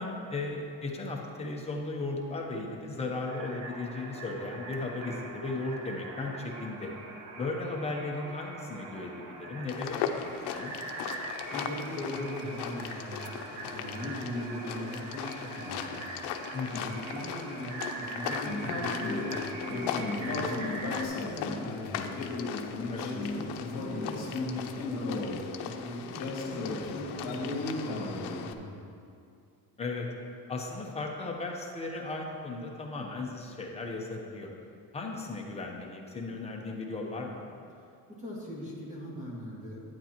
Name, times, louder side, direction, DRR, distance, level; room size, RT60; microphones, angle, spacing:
voice 1, 0.0-6.9 7.4-10.7 16.5-16.9 22.9-23.1 29.8-30.1 30.5-34.5 34.9-37.5, left 3 dB, 15° left, -1 dB, 0.8 m, -36 dB
sound 1, 3.3-21.1, right 3 dB, 50° right, 0.8 m, -42 dB
sound 2, 9.7-28.5, left 8 dB, 80° left, 0.7 m, -39 dB
voice 2, 11.1-16.0 16.7-22.3 22.9-25.2 25.6-28.8 38.2-39.8, equal, 20° right, -5 dB, 1.7 m, -40 dB
sound 3, 18.4-28.4, left 3 dB, 50° left, 1.9 m, -35 dB
11.0 x 9.3 x 2.9 m, 2.5 s
cardioid pair, 170°, 39 cm